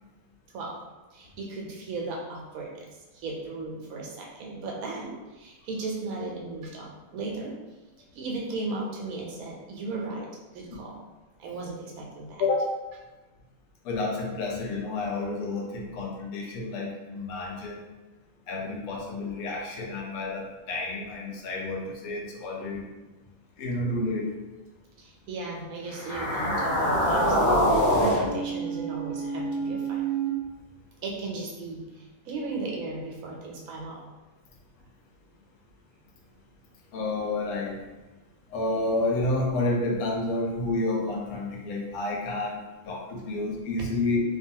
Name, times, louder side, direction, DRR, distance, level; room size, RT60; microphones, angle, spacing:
voice 1, 1.1-7.5 8.1-10.3 10.5-11.0 11.4-12.4 25.0-30.1 31.0-34.0 43.8-43.9, right 3 dB, 80° right, -2 dB, 1.1 m, -36 dB
voice 2, 13.8-17.9 18.5-22.8 23.6-24.3 36.9-37.8 38.5-42.6 42.9-44.2, left 2 dB, 85° left, -1 dB, 1.1 m, -30 dB
sound 1, 25.9-30.3, equal, 50° left, 0.6 m, -25 dB
2.5 x 2.3 x 2.7 m, 1.1 s
omnidirectional pair, 1.5 m